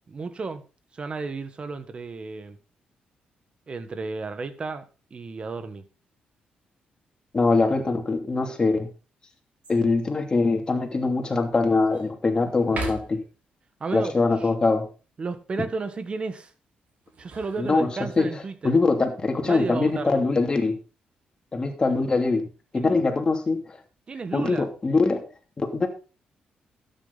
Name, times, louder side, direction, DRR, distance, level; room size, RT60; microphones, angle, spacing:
voice 1, 0.1-0.6 0.9-2.6 3.7-4.8 5.1-5.8 13.8-14.1 14.4-14.5 15.2-16.5 17.2-18.7 19.4-20.2 22.7-22.9 24.1-24.7, right 4 dB, 35° right, 1.6 m, -32 dB
voice 2, 7.3-8.9 9.7-13.2 13.9-14.9 17.6-17.9 18.2-20.8 21.5-22.4 22.7-23.8 24.3-25.2 25.6-25.9, left 3 dB, 30° left, 2.8 m, -23 dB
sound 1, 9.6-10.1 10.7-10.8 11.3-12.1 12.6-13.4 16.9-18.3 19.6-20.2, right 3 dB, 60° right, 5.8 m, -39 dB
13.0 x 9.4 x 4.1 m
cardioid pair, 115°, 3 cm